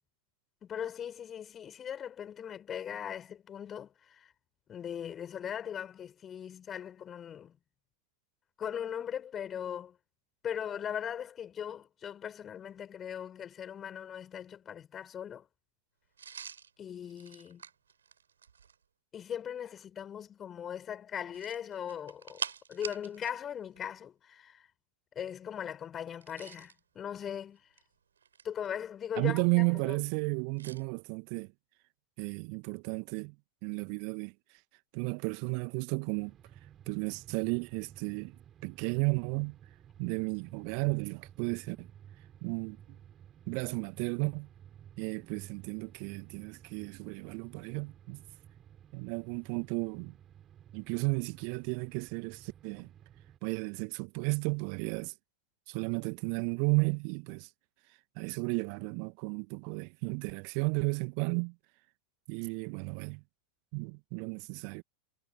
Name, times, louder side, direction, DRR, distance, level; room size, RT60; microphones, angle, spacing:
voice 1, 0.6-4.3 4.7-7.6 8.6-10.0 10.4-15.5 16.8-17.6 19.1-22.4 22.7-24.7 25.1-27.6 28.4-30.0, left 9 dB, 25° left, 5.1 m, -39 dB
sound 1, 16.2-18.8 21.3-23.4 23.7-23.8 26.1-26.8 27.6-28.7 30.6-30.8, right 7 dB, 70° right, 5.7 m, -44 dB
voice 2, 29.2-31.5 32.2-33.4 33.6-34.3 34.9-36.3 36.9-39.6 40.0-41.9 42.4-43.0 43.5-44.5 45.0-48.2 48.9-50.2 50.7-52.9 53.4-55.1 55.7-57.5 58.1-61.5 62.3-63.2 63.7-64.8, right 40 dB or more, 45° right, 1.8 m, -33 dB
sound 2, 36.1-53.4, right 10 dB, 25° right, 6.2 m, -55 dB
figure-of-eight pair, 90°, 0 cm